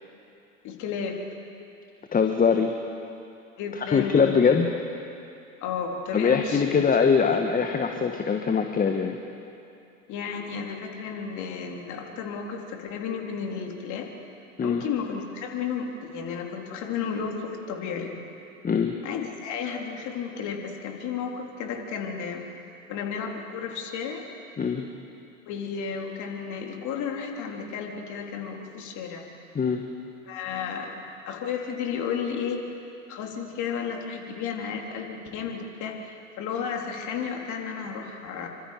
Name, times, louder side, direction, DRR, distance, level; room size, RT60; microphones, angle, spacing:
voice 1, 0.6-1.2 3.6-4.5 5.6-6.8 7.2-7.3 10.1-14.1 14.6-18.2 19.0-22.4 22.9-24.3 25.5-29.3 30.3-31.0 31.3-32.7 33.1-38.5, left 6 dB, 50° left, 1 dB, 3.7 m, -33 dB
voice 2, 2.1-2.7 3.9-4.7 6.1-9.2 14.6-14.8 18.6-19.0 24.6-24.9 29.5-29.8, left 6 dB, 20° left, 4 dB, 1.5 m, -22 dB
27.5 x 25.0 x 5.1 m, 2.7 s
figure-of-eight pair, 75°, 38 cm